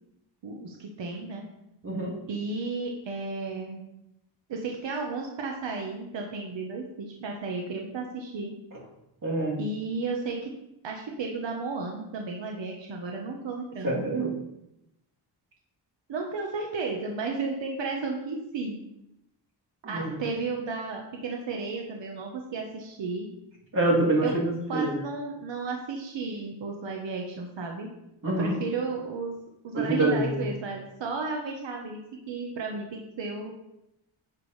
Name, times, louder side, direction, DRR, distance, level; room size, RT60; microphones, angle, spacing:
voice 1, 0.4-1.5 2.3-3.8 4.5-8.5 9.5-10.5 10.8-14.0 16.1-18.8 19.8-23.3 24.2-24.3 24.7-27.9 28.3-29.3 29.6-33.5, right 4 dB, 65° right, 1 dB, 1.1 m, -33 dB
voice 2, 1.8-2.2 9.2-9.6 13.8-14.4 19.8-20.2 23.7-25.0 28.2-28.6 29.7-30.4, right 2 dB, 40° right, -5 dB, 3.0 m, -26 dB
9.6 x 6.7 x 3.2 m, 0.86 s
wide cardioid pair, 130°, 47 cm